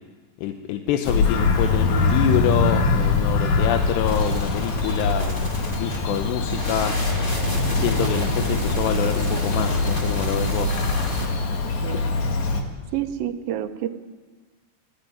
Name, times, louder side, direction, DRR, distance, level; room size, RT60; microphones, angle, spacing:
voice 1, 0.4-6.9 7.7-10.8, left 10 dB, 85° left, 6 dB, 3.1 m, -26 dB
Bird vocalization bird call bird song, 1.0-12.6, left 3 dB, 50° left, 2.7 m, -23 dB
sound 1, 4.0-11.3, equal, 15° left, 2.4 m, -30 dB
voice 2, 12.9-13.9, right 11 dB, 70° right, 8 dB, 2.5 m, -29 dB
21.5 x 15.0 x 9.4 m, 1.4 s
omnidirectional pair, 4.8 m